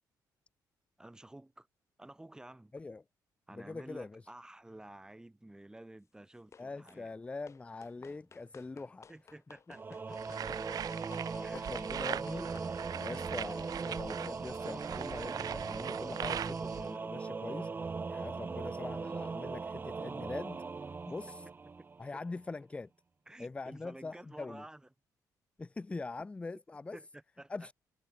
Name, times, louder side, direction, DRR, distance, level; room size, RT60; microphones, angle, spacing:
voice 1, 1.0-1.7 2.0-2.7 3.5-7.2 8.0-8.2 8.7-10.4 11.4-12.0 21.1-21.5 21.8-21.9 22.1-22.2 23.3-24.9 26.9-27.5, right 1 dB, 10° right, 3.5 m, -53 dB
voice 2, 3.5-4.2 6.6-9.1 10.5-10.6 11.4-12.5 12.9-17.7 18.1-20.6 21.1-21.5 22.0-22.9 23.4-24.6 25.6-27.0 27.5-27.7, left 3 dB, 15° left, 0.4 m, -43 dB
sound 1, 6.5-7.0 7.5-12.8, left 6 dB, 40° left, 6.7 m, -57 dB
Singing / Musical instrument, 9.7-22.2, right 4 dB, 30° right, 1.0 m, -39 dB
sound 2, 10.2-16.9, right 10 dB, 60° right, 0.7 m, -41 dB
cardioid pair, 100°, 7 cm